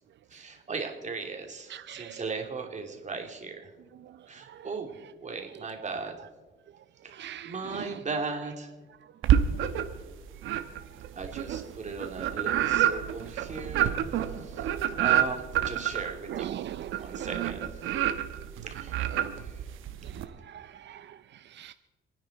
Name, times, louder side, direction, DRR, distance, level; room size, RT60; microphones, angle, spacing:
voice 1, 0.3-3.7 4.3-4.9 5.2-6.1 7.0-8.7 11.2-14.0 14.4-14.7 15.0-16.6 17.0-17.7 18.7-19.0 19.4-19.5, right 4 dB, 35° right, 2.8 m, -37 dB
voice 2, 7.2-7.5 16.3-17.1 20.5-21.0 21.6-21.7, right 11 dB, 65° right, 0.5 m, -38 dB
sound 1, 9.2-10.0 10.4-20.2, right 10 dB, 90° right, 1.1 m, -28 dB
28.0 x 9.7 x 4.2 m
cardioid pair, 90°, 20 cm